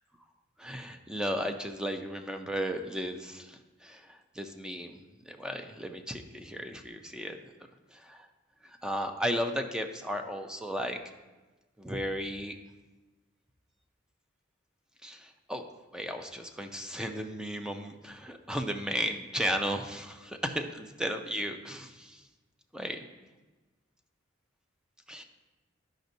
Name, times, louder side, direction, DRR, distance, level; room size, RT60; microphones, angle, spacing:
voice 1, 0.6-4.0 4.4-5.0 5.3-7.4 8.1-8.2 8.8-11.0 11.8-12.6 15.0-15.6 15.9-22.2 22.7-23.0 25.1-25.2, equal, 5° right, 5 dB, 0.5 m, -34 dB
13.5 x 5.1 x 2.7 m, 1.2 s
head